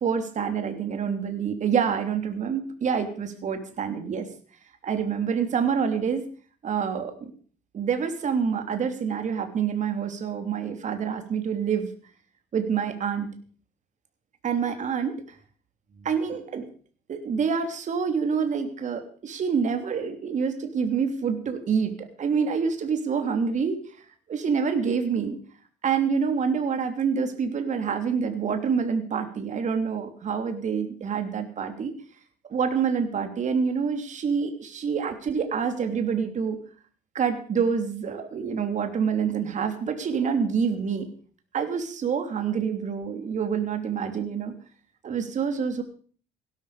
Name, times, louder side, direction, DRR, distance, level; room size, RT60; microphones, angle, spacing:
voice 1, 0.0-4.3 4.8-6.3 6.6-7.3 7.7-11.9 12.5-13.3 14.4-15.2 16.0-16.7 17.1-23.8 24.3-25.4 25.8-31.9 32.5-36.6 37.1-41.1 41.5-44.5 45.0-45.8, right 6 dB, 45° right, 7 dB, 3.1 m, -27 dB
17.0 x 12.0 x 5.1 m, 0.43 s
cardioid pair, 110°, 17 cm